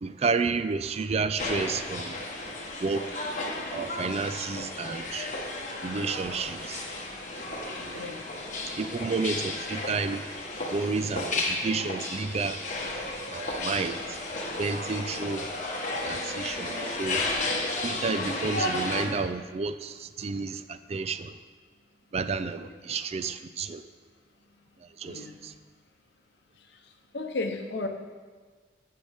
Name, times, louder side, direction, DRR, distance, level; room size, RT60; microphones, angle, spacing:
voice 1, 0.0-2.2 2.8-3.1 3.7-5.3 5.8-6.8 7.4-8.0 8.8-10.2 10.7-12.6 13.2-14.2 14.6-15.5 16.0-17.3 17.8-21.4 22.1-23.8 24.8-25.5, right 4 dB, 35° right, 12 dB, 0.3 m, -31 dB
sound 1, 1.4-19.1, left 2 dB, 45° left, 1.3 m, -33 dB
voice 2, 7.9-8.3 25.0-25.4 27.1-27.9, left 2 dB, 65° left, 5 dB, 0.9 m, -33 dB
11.5 x 7.6 x 3.5 m, 1.5 s
head